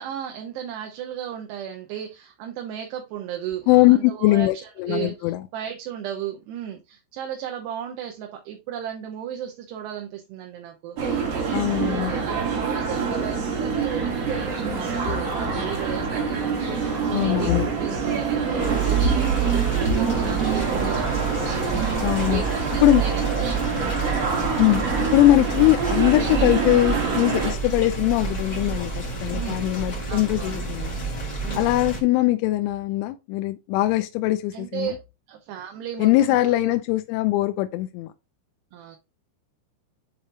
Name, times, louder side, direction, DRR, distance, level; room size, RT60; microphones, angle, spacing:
voice 1, 0.0-21.2 22.3-24.4 29.3-29.6 30.1-30.6 31.4-31.7 34.5-35.0 35.3-36.7 38.7-39.0, right 10 dB, 75° right, 2.6 m, -35 dB
voice 2, 3.7-5.4 11.5-12.1 17.1-17.7 22.0-22.4 22.8-23.0 24.6-24.8 25.1-31.0 31.6-35.0 36.0-38.1, left 17 dB, 85° left, 3.0 m, -21 dB
sound 1, 11.0-27.5, right 5 dB, 50° right, 2.1 m, -26 dB
sound 2, 18.6-32.0, right 5 dB, 45° left, 1.2 m, -28 dB
10.5 x 4.2 x 2.5 m
omnidirectional pair, 5.5 m